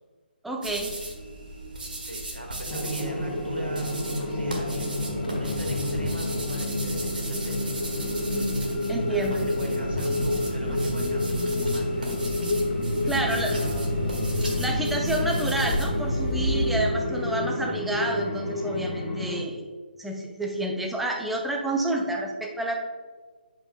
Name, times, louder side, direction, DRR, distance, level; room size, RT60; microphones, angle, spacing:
voice 1, 0.4-1.0 8.9-9.8 13.1-13.6 14.6-19.7 20.0-22.8, right 2 dB, ahead, 0 dB, 0.5 m, -29 dB
sound 1, 0.6-15.8, right 2 dB, 60° right, 1.6 m, -38 dB
voice 2, 2.0-5.0 5.3-8.1 9.1-12.3 13.0-14.1 15.2-15.6, right 1 dB, 75° right, 1 dB, 1.7 m, -41 dB
sound 2, 2.7-16.8, left 1 dB, 55° left, 1.8 m, -34 dB
sound 3, 2.7-19.4, left 1 dB, 15° left, 2.1 m, -29 dB
11.0 x 5.4 x 2.2 m, 1.4 s
figure-of-eight pair, 145°, 6 cm